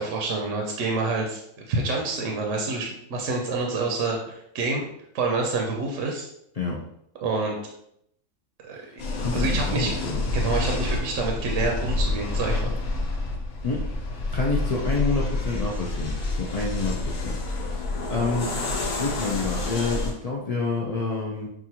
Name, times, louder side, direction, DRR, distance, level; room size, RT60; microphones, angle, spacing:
voice 1, 0.0-1.4 1.7-4.8 5.1-6.3 7.2-7.5 8.6-8.8 9.3-9.9 10.3-12.8, right 3 dB, 70° right, 1 dB, 1.0 m, -27 dB
voice 2, 8.7-10.2 13.6-13.8 14.3-17.4 17.6-18.5 19.0-21.5, left 3 dB, 50° left, -3 dB, 0.4 m, -28 dB
sound 1, 9.0-20.1, left 2 dB, 90° left, 1.3 m, -28 dB
5.9 x 2.5 x 2.8 m, 0.74 s
omnidirectional pair, 1.4 m